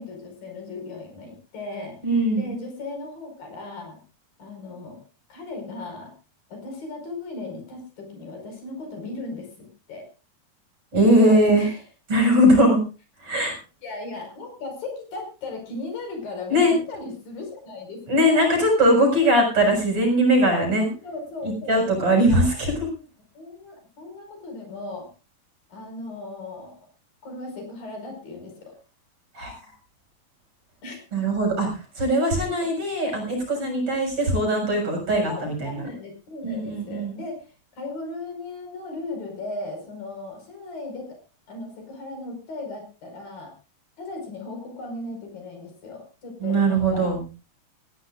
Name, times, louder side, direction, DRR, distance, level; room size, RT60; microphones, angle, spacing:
voice 1, 0.0-2.0 2.3-4.0 4.4-5.0 5.3-6.1 6.5-10.0 11.1-11.8 13.8-18.0 18.3-18.5 21.0-22.5 22.9-23.0 23.3-25.1 25.7-26.8 27.2-28.7 30.8-31.0 32.1-32.7 35.3-37.5 37.7-41.1 41.5-43.5 44.0-47.1, left 2 dB, 65° left, 4 dB, 6.9 m, -37 dB
voice 2, 2.0-2.5 10.9-11.6 12.1-12.8 13.2-13.6 16.5-16.7 18.1-20.9 21.4-22.7 29.3-29.5 31.1-35.8 36.4-37.1 46.4-47.2, right 1 dB, 35° right, 2 dB, 7.6 m, -20 dB
20.5 x 16.5 x 2.5 m, 0.32 s
omnidirectional pair, 4.3 m